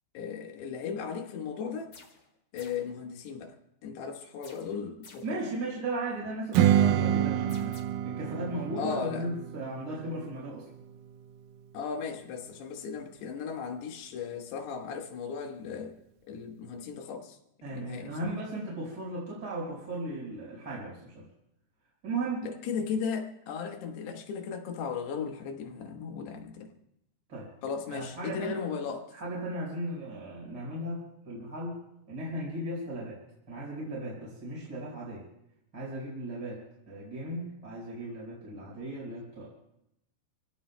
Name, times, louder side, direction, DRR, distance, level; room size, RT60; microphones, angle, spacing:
voice 1, 0.1-1.9 2.5-3.6 3.8-5.4 8.8-9.3 11.7-16.0 16.3-17.4 17.7-18.4 22.4-26.7 27.6-29.1, left 6 dB, 85° left, 4 dB, 3.4 m, -36 dB
sound 1, 1.9-2.3 2.6-2.9 4.4-5.4 7.5-7.8, left 4 dB, 40° left, 2.5 m, -53 dB
voice 2, 5.2-7.8 8.0-10.7 17.6-21.2 22.0-22.5 27.3-27.5 27.9-28.6 29.1-31.8 32.1-33.2 33.5-35.2 35.7-36.6 36.9-39.5, right 1 dB, 25° right, -6 dB, 5.1 m, -36 dB
Strum, 6.5-11.8, right 10 dB, 75° right, 2.1 m, -28 dB
28.0 x 17.0 x 2.2 m, 0.79 s
omnidirectional pair, 4.6 m